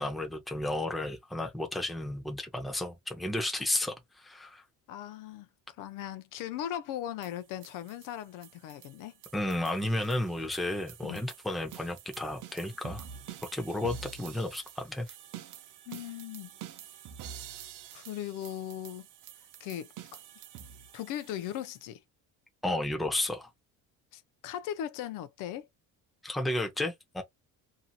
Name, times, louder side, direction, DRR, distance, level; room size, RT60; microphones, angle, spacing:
voice 1, 0.0-4.6 9.3-13.1 13.5-15.1 22.6-23.5 26.2-27.2, left 1 dB, ahead, 0.5 m, -32 dB
voice 2, 4.9-9.1 11.0-11.2 15.9-16.5 17.9-19.1 19.6-20.2 20.9-22.0 24.1-25.7, left 11 dB, 65° left, 0.5 m, -38 dB
sound 1, 7.2-21.8, right 9 dB, 60° right, 0.6 m, -48 dB
2.7 x 2.7 x 2.2 m
cardioid pair, 155°, 35 cm